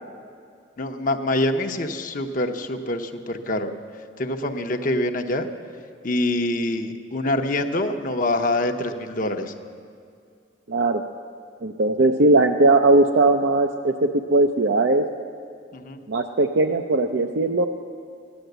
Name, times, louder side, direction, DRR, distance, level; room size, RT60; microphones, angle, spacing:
voice 1, 0.8-3.7 4.2-5.5 6.0-9.5 15.7-16.0, left 1 dB, 45° left, 5 dB, 0.8 m, -25 dB
voice 2, 10.7-11.0 11.6-15.1 16.1-17.7, right 2 dB, 70° right, 4 dB, 0.6 m, -19 dB
15.0 x 10.5 x 7.9 m, 2.3 s
head